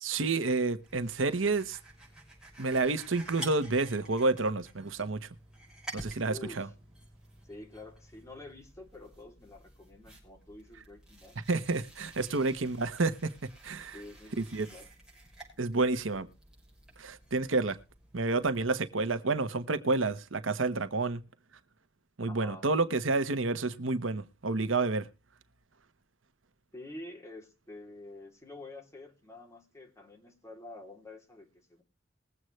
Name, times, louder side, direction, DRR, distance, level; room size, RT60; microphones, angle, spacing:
voice 1, 0.0-1.8 2.6-5.3 5.9-6.7 11.5-14.0 14.4-14.7 15.6-16.3 17.0-17.8 18.1-21.2 22.2-25.1, right 3 dB, 90° right, 1.1 m, -29 dB
sound 1, 0.8-18.7, right 1 dB, 5° right, 5.8 m, -51 dB
voice 2, 6.3-6.7 7.4-11.4 12.6-12.9 13.9-14.9 16.1-16.2 22.3-22.7 26.7-31.8, left 2 dB, 15° left, 3.1 m, -48 dB
21.0 x 7.9 x 3.2 m
head